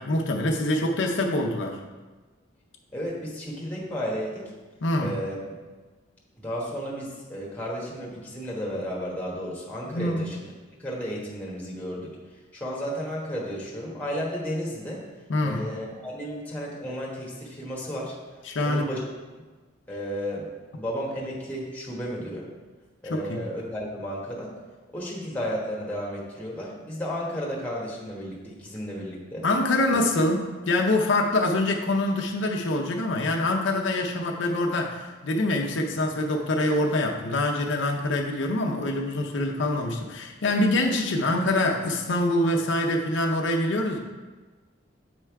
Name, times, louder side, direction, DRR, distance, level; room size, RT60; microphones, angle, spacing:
voice 1, 0.0-1.8 4.8-5.1 9.9-10.2 15.3-15.7 18.5-18.9 23.1-23.4 29.4-44.0, left 1 dB, 70° left, 1 dB, 0.6 m, -25 dB
voice 2, 2.9-4.4 5.0-5.6 6.4-10.4 10.8-12.1 12.5-15.0 15.4-18.1 18.6-19.0 19.9-20.5 20.7-22.5 23.0-24.5 24.9-29.4 29.9-30.0, equal, 10° left, -4 dB, 1.2 m, -33 dB
8.1 x 3.4 x 4.6 m, 1.3 s
head